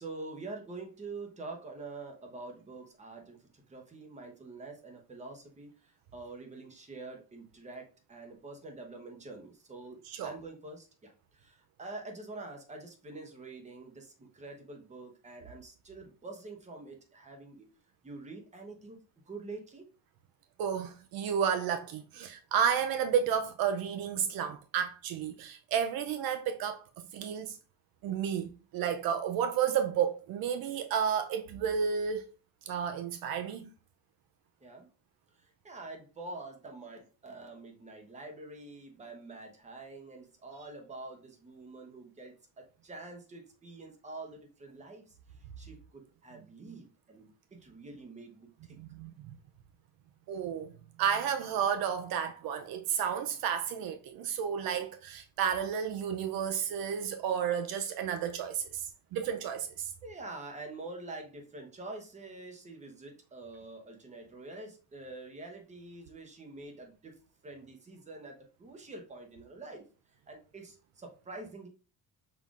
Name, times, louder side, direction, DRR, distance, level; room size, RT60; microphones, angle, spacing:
voice 1, 0.0-17.7 18.0-19.0 19.3-19.8 34.6-34.9 35.4-45.2 45.6-48.8 60.0-67.2 67.4-69.8 70.3-71.7, right 3 dB, 20° right, 1.0 m, -46 dB
voice 2, 20.6-26.8 27.1-27.6 28.0-32.3 32.7-33.7 48.7-49.3 50.3-50.7 51.0-59.9, right 8 dB, 70° right, 0.5 m, -32 dB
5.8 x 3.7 x 2.4 m
cardioid pair, 155°, 37 cm